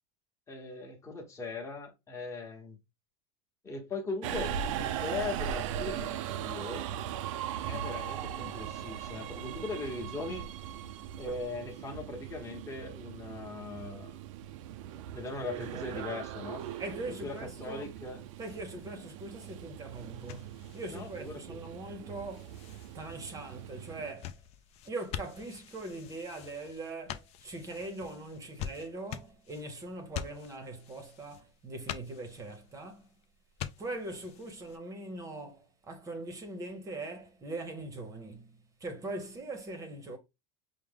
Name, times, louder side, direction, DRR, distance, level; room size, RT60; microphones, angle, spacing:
voice 1, 0.5-2.8 3.6-6.9 7.7-10.5 11.2-14.2 15.1-16.7 17.1-18.2 20.9-21.6, left 3 dB, 15° left, 1.0 m, -39 dB
Subway metro underground, 4.2-24.1, right 10 dB, 80° right, 0.4 m, -39 dB
sound 1, 16.6-34.8, left 10 dB, 40° left, 0.4 m, -47 dB
voice 2, 16.8-17.9 18.4-22.5 22.9-24.4 24.8-33.1 33.8-40.2, right 2 dB, 20° right, 0.8 m, -41 dB
4.7 x 2.1 x 3.5 m
supercardioid pair, 135°, 16 cm